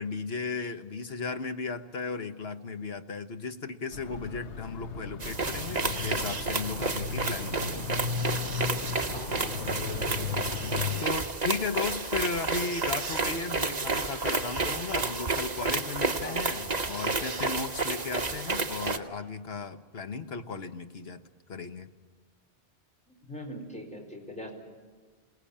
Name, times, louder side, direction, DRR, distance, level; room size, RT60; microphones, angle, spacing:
voice 1, 0.0-8.0 11.0-21.2 21.5-21.9, left 4 dB, 65° left, 8 dB, 1.5 m, -35 dB
sound 1, 3.9-11.1, left 6 dB, 90° left, 1.4 m, -35 dB
sound 2, 5.2-19.0, right 3 dB, 40° right, 1.5 m, -31 dB
voice 2, 9.1-10.3 16.2-16.4 23.1-24.5, left 1 dB, 5° left, 1 dB, 4.9 m, -41 dB
28.0 x 19.0 x 8.7 m, 1.4 s
omnidirectional pair, 1.1 m